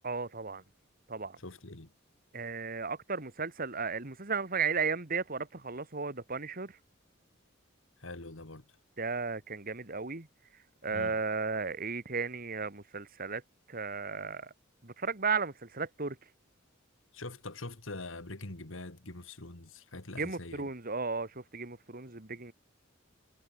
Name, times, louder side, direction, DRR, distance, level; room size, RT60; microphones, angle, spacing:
voice 1, 0.0-0.6 1.1-1.4 2.3-6.8 9.0-10.3 10.5-13.4 13.7-14.5 14.8-16.3 20.2-22.5, right 4 dB, 45° right, 2.2 m, -35 dB
voice 2, 1.4-1.9 8.0-8.6 10.9-11.2 17.1-20.7, left 2 dB, 70° left, 2.5 m, -44 dB
head